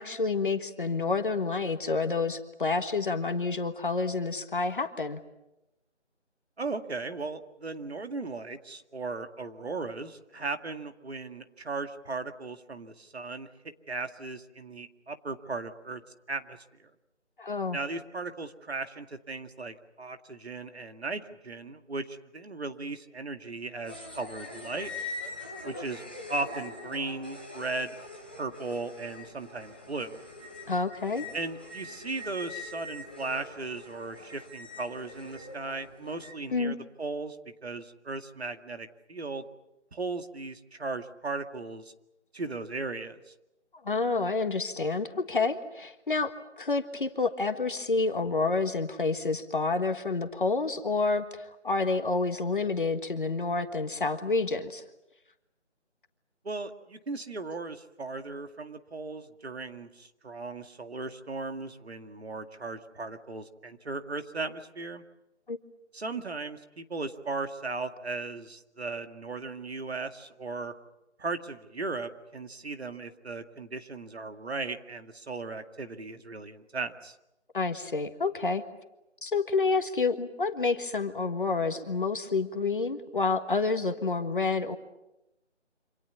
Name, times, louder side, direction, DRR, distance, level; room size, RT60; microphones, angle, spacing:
voice 1, 0.0-5.2 17.4-17.8 30.7-31.3 36.5-36.8 43.8-54.8 65.5-65.6 77.5-78.6 79.2-84.8, left 3 dB, 45° left, 8 dB, 1.6 m, -29 dB
voice 2, 6.6-16.0 16.3-16.9 17.7-24.9 25.6-26.0 26.3-28.0 28.4-30.2 31.3-37.4 37.6-39.4 39.9-41.9 42.3-43.3 56.4-65.0 65.9-70.7 71.2-77.2, right 3 dB, 60° right, 7 dB, 2.2 m, -37 dB
sound 1, 23.8-36.3, left 2 dB, 10° left, 0.9 m, -43 dB
27.5 x 26.5 x 7.1 m, 0.92 s
figure-of-eight pair, 170°, 35 cm